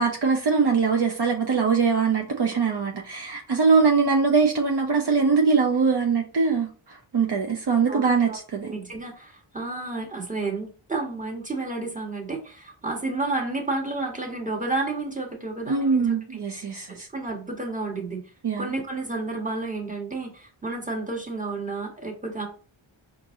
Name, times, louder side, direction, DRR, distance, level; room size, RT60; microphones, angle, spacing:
voice 1, 0.0-8.7 15.7-17.1 18.4-18.7, right 5 dB, 55° right, 0.8 m, -22 dB
voice 2, 7.9-16.1 16.9-18.2 18.6-22.5, right 3 dB, 15° right, 1.5 m, -31 dB
4.5 x 2.6 x 3.7 m
wide cardioid pair, 65°, 48 cm